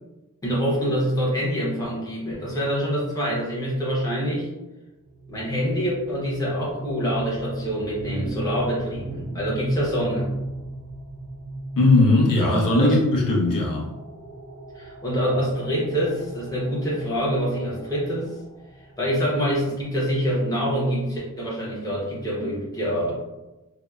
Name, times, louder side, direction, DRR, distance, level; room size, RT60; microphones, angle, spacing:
voice 1, 0.4-4.5 5.3-10.3 12.1-12.2 12.7-13.0 14.7-18.3 19.0-23.1, equal, 10° left, -7 dB, 0.7 m, -25 dB
sound 1, 5.1-19.9, right 2 dB, 70° right, 0.5 m, -37 dB
voice 2, 11.8-13.9, left 2 dB, 75° left, -2 dB, 0.7 m, -19 dB
2.7 x 2.1 x 2.3 m, 1.0 s
wide cardioid pair, 160°, 33 cm